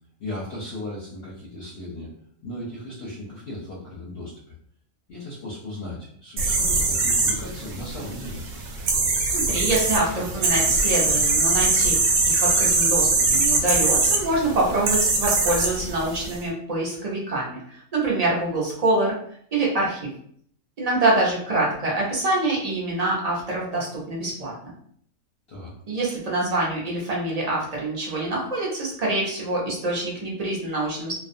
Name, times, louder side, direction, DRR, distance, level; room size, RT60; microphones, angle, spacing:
voice 1, 0.2-2.1 2.4-4.5 5.1-8.4 25.5-25.7, left 1 dB, 60° left, -5 dB, 0.7 m, -36 dB
sound 1, 6.4-16.4, right 3 dB, 75° right, 0.9 m, -22 dB
voice 2, 9.3-19.2 19.5-20.1 20.8-24.7 25.9-31.1, right 2 dB, 45° right, -4 dB, 0.5 m, -25 dB
2.4 x 2.2 x 2.5 m, 0.63 s
omnidirectional pair, 1.4 m